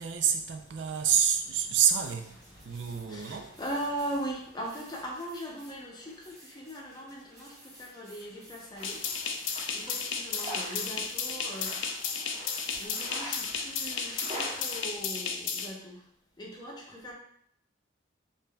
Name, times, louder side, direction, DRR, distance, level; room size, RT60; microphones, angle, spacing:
voice 1, 0.0-2.3 2.6-3.5, right 8 dB, 65° right, 6 dB, 0.4 m, -27 dB
voice 2, 0.6-1.1 2.5-12.0 12.3-12.4 12.8-16.1 16.4-17.1, right 1 dB, 20° left, -2 dB, 0.7 m, -40 dB
sound 1, 1.7-12.9, equal, 15° right, 1.1 m, -55 dB
sound 2, 8.7-15.0, equal, 35° right, 1.5 m, -44 dB
sound 3, 8.8-15.7, left 6 dB, 90° left, 0.4 m, -34 dB
5.2 x 2.6 x 2.2 m, 0.69 s
head